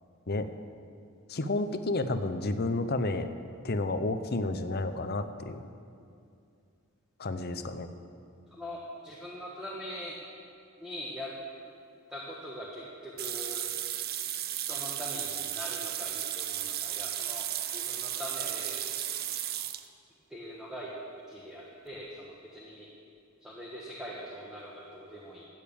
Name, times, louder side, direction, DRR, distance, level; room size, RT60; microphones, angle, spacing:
voice 1, 1.3-3.3 3.6-5.6 7.2-7.9, left 2 dB, 45° left, 10 dB, 0.7 m, -31 dB
voice 2, 9.0-10.2 10.8-11.3 12.1-13.6 14.5-18.8 20.3-20.9 21.3-22.9 23.4-25.4, equal, 5° right, -5 dB, 1.3 m, -42 dB
sound 1, 13.2-19.8, right 11 dB, 45° right, 0.6 m, -34 dB
13.5 x 9.1 x 7.1 m, 2.4 s
head